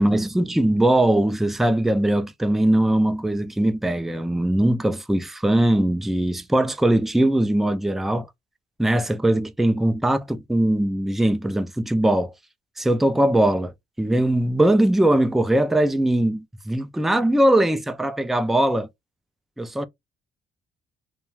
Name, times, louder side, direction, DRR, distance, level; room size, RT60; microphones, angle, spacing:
voice 1, 0.0-8.3 8.8-12.3 12.8-18.9 19.6-19.9, right 1 dB, ahead, 0.3 m, -21 dB
2.3 x 2.2 x 3.0 m
cardioid pair, 90°, 20 cm